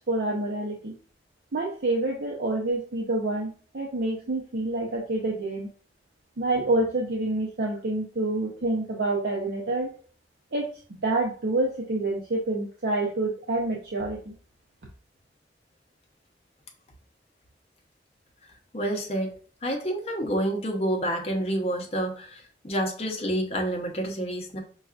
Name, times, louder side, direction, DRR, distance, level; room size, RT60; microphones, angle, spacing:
voice 1, 0.1-0.9 1.5-5.7 6.4-9.9 10.5-14.3, right 2 dB, 70° right, -2 dB, 0.6 m, -27 dB
voice 2, 18.7-19.3 19.6-24.6, right 1 dB, 35° left, 1 dB, 0.7 m, -28 dB
5.5 x 2.3 x 2.4 m, 0.42 s
head